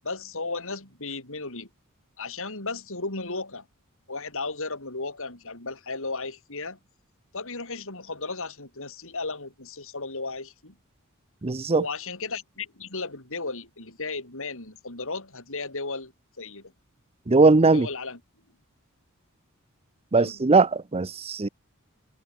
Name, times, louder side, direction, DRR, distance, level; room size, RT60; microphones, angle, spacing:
voice 1, 0.0-1.7 2.2-3.7 4.1-6.8 7.3-10.8 11.7-16.1 16.4-16.7 17.7-18.2 20.1-20.4, left 3 dB, 65° left, 6.3 m, -35 dB
voice 2, 11.4-11.8 17.3-17.9 20.1-21.5, right 3 dB, 30° right, 0.7 m, -19 dB
head